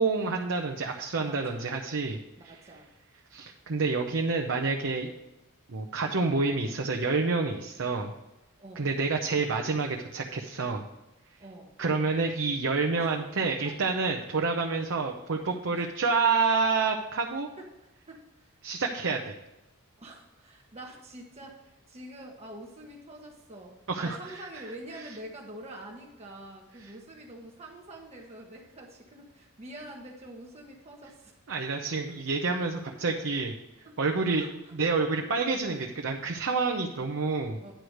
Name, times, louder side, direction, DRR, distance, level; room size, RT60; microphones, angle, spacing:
voice 1, 0.0-2.2 2.4-2.6 3.3-5.1 5.7-8.1 8.8-10.8 11.8-17.5 18.6-19.4 23.9-24.6 31.5-33.5 34.0-34.4 34.8-37.6, right 4 dB, 60° right, 2 dB, 0.8 m, -28 dB
voice 2, 1.2-1.7 2.4-2.9 8.6-8.9 11.4-11.7 13.0-13.1 13.6-13.8 15.0-15.1 15.8-15.9 17.6-17.7 18.1-18.5 20.0-31.4 32.1-32.2 32.6-33.0 33.8-34.0 34.4-34.7 37.6-37.7, right 1 dB, 30° right, 0 dB, 1.1 m, -46 dB
10.5 x 4.8 x 6.4 m, 0.97 s
head